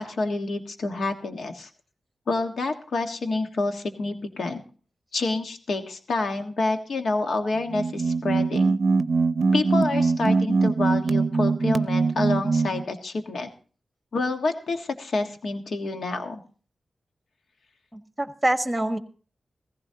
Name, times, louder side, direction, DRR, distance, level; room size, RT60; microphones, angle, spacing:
voice 1, 0.0-1.7 2.3-4.6 5.1-8.8 9.5-13.5 14.1-16.4, left 3 dB, 80° left, 5 dB, 1.5 m, -28 dB
sound 1, 7.6-12.8, right 4 dB, 65° right, 0.5 m, -22 dB
voice 2, 17.9-19.0, right 1 dB, 10° right, 7 dB, 1.4 m, -25 dB
16.0 x 15.0 x 2.8 m, 0.39 s
wide cardioid pair, 75°, 0 cm